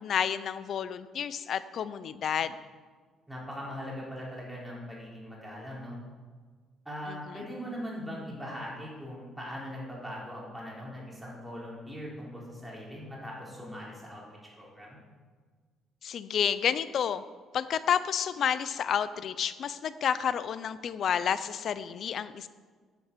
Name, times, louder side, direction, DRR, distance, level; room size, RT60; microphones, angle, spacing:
voice 1, 0.0-2.5 7.1-7.2 16.0-17.2 17.5-22.5, left 8 dB, 55° left, 14 dB, 0.5 m, -30 dB
voice 2, 3.3-6.0 6.9-15.0, equal, 10° right, -5 dB, 3.7 m, -40 dB
10.5 x 7.0 x 6.8 m, 1.5 s
cardioid pair, 115°, 0 cm